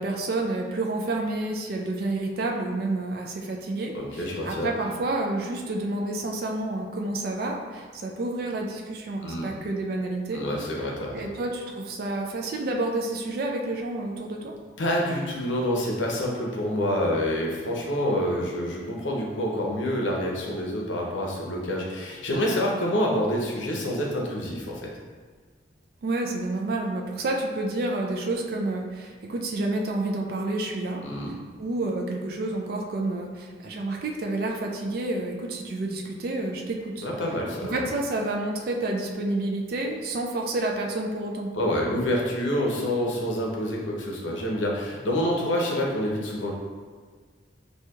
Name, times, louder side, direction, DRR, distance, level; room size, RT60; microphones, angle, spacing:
voice 1, 0.0-10.4 11.1-14.5 26.0-31.0 31.6-37.1 37.6-41.5, right 2 dB, 50° right, 1 dB, 0.3 m, -29 dB
voice 2, 3.9-4.7 9.2-9.5 10.3-11.3 14.8-24.9 31.0-31.3 37.0-37.8 41.5-46.5, equal, 85° left, -2 dB, 0.7 m, -27 dB
4.3 x 2.7 x 2.3 m, 1.5 s
head